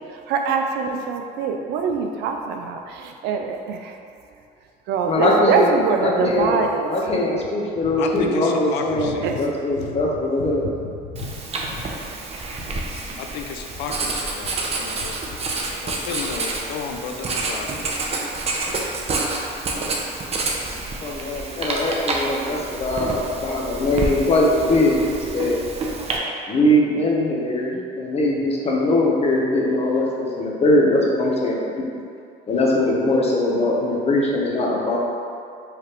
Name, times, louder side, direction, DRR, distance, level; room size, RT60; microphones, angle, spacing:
voice 1, 0.3-3.9 4.9-6.9 9.2-9.4, right 5 dB, 75° right, 4 dB, 0.5 m, -23 dB
voice 2, 5.1-6.6 6.9-10.7 21.0-25.6 26.5-30.1 30.4-32.0 32.5-35.0, left 1 dB, 35° left, -2 dB, 0.9 m, -21 dB
voice 3, 7.8-9.4 9.7-12.7 13.2-14.5 14.8-15.2 15.8-17.7, left 6 dB, 85° left, 4 dB, 0.4 m, -33 dB
Writing, 11.2-26.2, right 3 dB, 35° right, 0.6 m, -28 dB
4.9 x 3.1 x 3.0 m, 2.5 s
cardioid pair, 100°, 17 cm